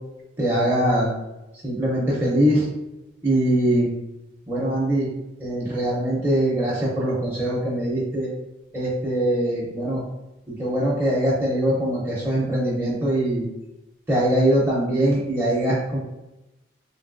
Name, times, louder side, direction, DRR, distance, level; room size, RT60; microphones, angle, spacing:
voice 1, 0.4-1.1 1.6-2.7 3.2-3.9 4.5-5.1 5.4-8.3 8.7-10.0 10.5-13.4 14.1-16.0, right 1 dB, 10° right, -8 dB, 0.5 m, -22 dB
3.1 x 2.6 x 2.5 m, 0.97 s
head